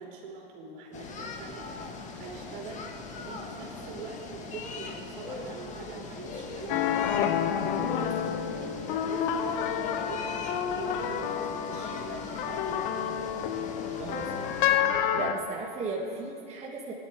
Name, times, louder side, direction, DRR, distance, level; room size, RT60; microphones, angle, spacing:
voice 1, 0.0-2.9 3.2-13.3 15.0-15.3, right 4 dB, 65° right, -1 dB, 4.3 m, -43 dB
sound 1, 0.9-14.8, left 4 dB, 25° left, 1.8 m, -40 dB
sound 2, 6.7-15.3, left 9 dB, 60° left, 1.1 m, -29 dB
voice 2, 14.0-14.4 15.1-16.9, right 3 dB, 20° right, -3 dB, 2.2 m, -35 dB
19.5 x 12.0 x 5.0 m, 2.6 s
hypercardioid pair, 125°, 29 cm